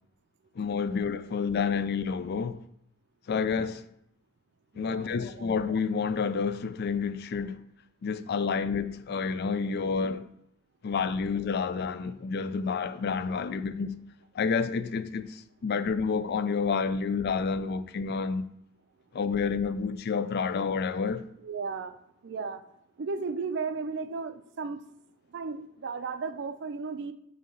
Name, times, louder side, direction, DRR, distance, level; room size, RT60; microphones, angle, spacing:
voice 1, 0.6-2.6 3.3-3.8 4.8-7.6 8.0-10.3 10.8-14.0 14.3-18.5 19.1-21.3, left 5 dB, 50° left, 0.3 m, -29 dB
voice 2, 4.7-5.5 21.4-22.0 22.2-22.6 23.0-24.8 25.3-27.1, right 4 dB, 55° right, 0.4 m, -35 dB
6.6 x 2.8 x 5.1 m
head